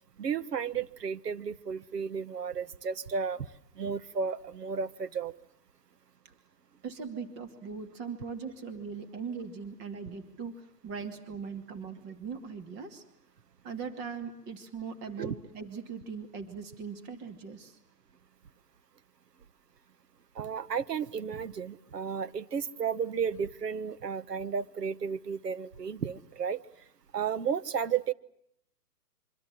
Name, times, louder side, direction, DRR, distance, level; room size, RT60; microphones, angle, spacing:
voice 1, 0.2-3.5 3.8-5.3 15.2-15.3 20.3-26.6 27.1-28.1, right 6 dB, 75° right, 14 dB, 1.5 m, -33 dB
voice 2, 6.8-13.0 13.6-17.8, right 5 dB, 20° right, 7 dB, 2.5 m, -40 dB
26.0 x 25.0 x 7.5 m, 0.73 s
hypercardioid pair, 145°, 48 cm